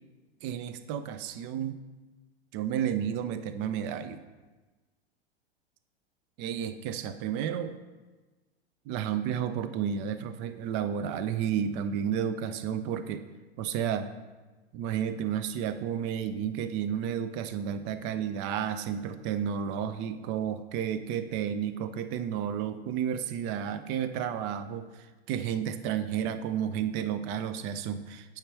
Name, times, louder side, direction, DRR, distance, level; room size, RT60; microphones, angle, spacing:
voice 1, 0.4-1.8 2.5-4.2 6.4-7.8 8.9-13.2 13.6-14.1 14.7-24.9 25.3-28.4, right 8 dB, 35° right, 11 dB, 0.5 m, -32 dB
8.6 x 3.5 x 4.5 m, 1.2 s
figure-of-eight pair, 95°, 32 cm